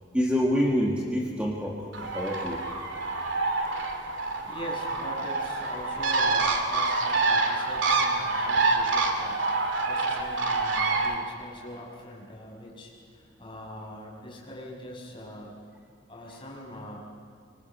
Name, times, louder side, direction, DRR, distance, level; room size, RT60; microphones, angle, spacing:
voice 1, 0.1-2.7, equal, 5° right, -3 dB, 1.9 m, -27 dB
Bird, 1.9-11.1, right 3 dB, 75° right, 2.6 m, -27 dB
voice 2, 4.5-15.5 16.1-17.0, equal, 25° left, -2 dB, 5.9 m, -42 dB
25.5 x 25.5 x 5.8 m, 2.4 s
head